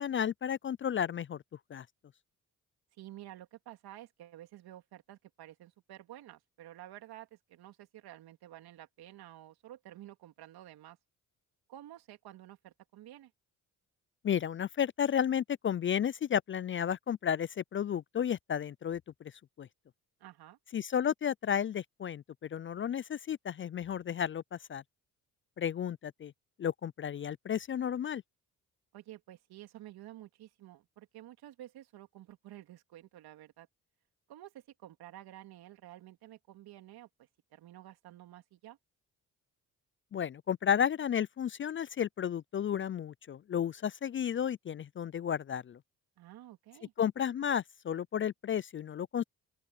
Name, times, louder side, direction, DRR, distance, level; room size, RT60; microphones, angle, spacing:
voice 1, 0.0-1.4 1.7-1.9 14.2-19.0 19.6-19.7 20.7-22.2 22.5-24.8 25.6-26.3 26.6-28.2 40.1-45.8 47.0-49.2, left 8 dB, 35° left, 0.4 m, -32 dB
voice 2, 3.0-11.0 11.7-13.3 20.2-20.6 28.9-33.7 34.3-37.1 37.5-38.8 46.2-46.9, right 13 dB, 75° right, 3.4 m, -51 dB
open air
supercardioid pair, 60°, 37 cm